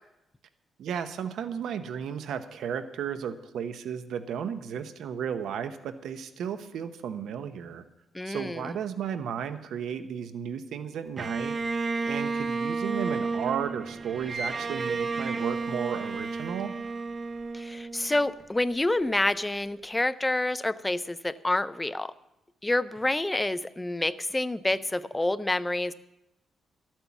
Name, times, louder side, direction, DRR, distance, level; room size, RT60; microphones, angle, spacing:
voice 1, 0.8-7.8 8.2-11.6 12.1-16.7, right 8 dB, 80° right, 10 dB, 0.8 m, -34 dB
voice 2, 8.1-8.7 17.5-22.1 22.6-25.9, left 2 dB, 10° left, 14 dB, 0.4 m, -28 dB
Bowed string instrument, 11.2-18.4, right 4 dB, 30° right, 0.6 m, -32 dB
13.0 x 9.0 x 7.1 m, 0.92 s
cardioid pair, 135°, 0 cm